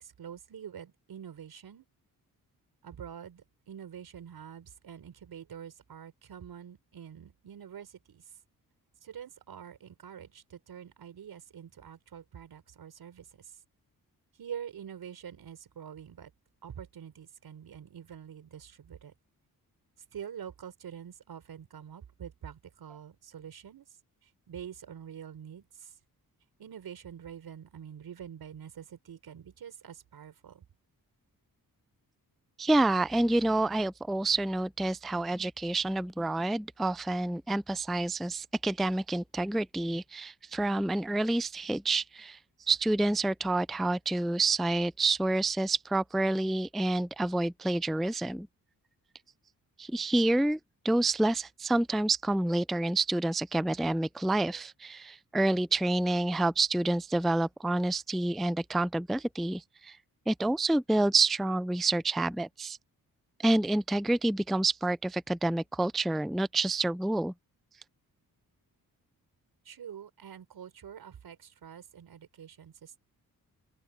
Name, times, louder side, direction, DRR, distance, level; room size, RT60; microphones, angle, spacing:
voice 1, 0.0-1.8 2.8-8.2 9.0-13.5 14.4-16.3 16.6-19.1 20.1-23.9 24.5-25.9 26.6-30.6 69.6-73.0, right 8 dB, 80° right, 5.2 m, -46 dB
voice 2, 32.6-42.4 42.7-48.5 49.8-50.6 50.8-60.0 60.3-62.8 63.4-67.3, right 2 dB, ahead, 0.4 m, -28 dB
open air
cardioid pair, 100°, 36 cm